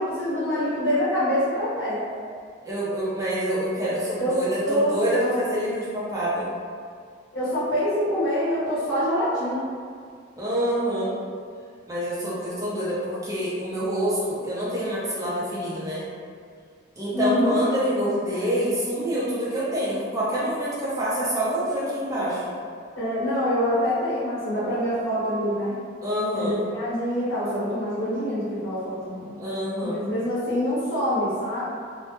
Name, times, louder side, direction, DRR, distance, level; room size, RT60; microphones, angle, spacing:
voice 1, 0.0-2.0 4.2-4.3 4.6-4.9 7.3-9.6 17.1-17.5 23.0-25.7 26.3-29.4 29.8-31.6, equal, 80° left, -10 dB, 0.7 m, -25 dB
voice 2, 2.6-6.5 10.4-11.2 11.9-16.1 17.0-22.5 26.0-26.6 29.4-30.0, equal, 15° right, -9 dB, 0.5 m, -26 dB
2.1 x 2.0 x 2.9 m, 2.1 s
head